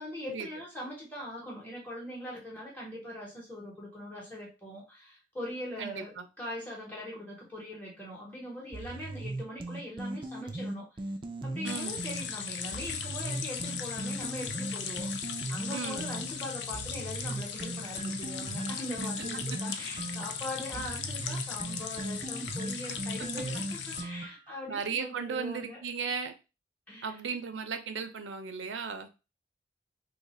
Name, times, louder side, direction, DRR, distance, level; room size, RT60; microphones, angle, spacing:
voice 1, 0.0-10.9 11.4-25.8 26.9-27.2, left 1 dB, 10° left, -4 dB, 1.0 m, -41 dB
voice 2, 5.8-6.2 11.6-12.0 15.7-16.1 19.5-19.6 23.5-23.6 24.7-26.3 27.0-29.1, right 5 dB, 90° right, 7 dB, 0.5 m, -36 dB
sound 1, 8.7-12.3 12.7-16.3 16.7-24.5, right 2 dB, 25° right, 0.3 m, -38 dB
sound 2, 11.7-24.0, left 7 dB, 75° left, 0.4 m, -38 dB
2.8 x 2.4 x 4.2 m, 0.29 s
head